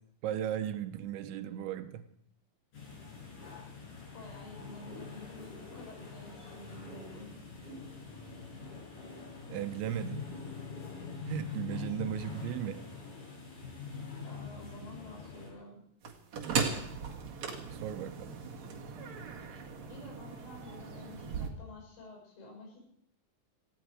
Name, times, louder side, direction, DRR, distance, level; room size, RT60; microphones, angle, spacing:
voice 1, 0.2-2.1 9.5-10.3 11.3-12.9 17.7-18.3, right 11 dB, 80° right, 3.2 m, -36 dB
sound 1, 2.7-15.5, left 5 dB, 45° left, 7.3 m, -44 dB
voice 2, 4.1-7.4 11.7-12.1 14.2-15.8 19.9-22.9, left 1 dB, 85° left, 9.3 m, -50 dB
sound 2, 16.0-21.5, right 5 dB, 50° right, 2.4 m, -37 dB
18.5 x 16.0 x 4.8 m
omnidirectional pair, 5.5 m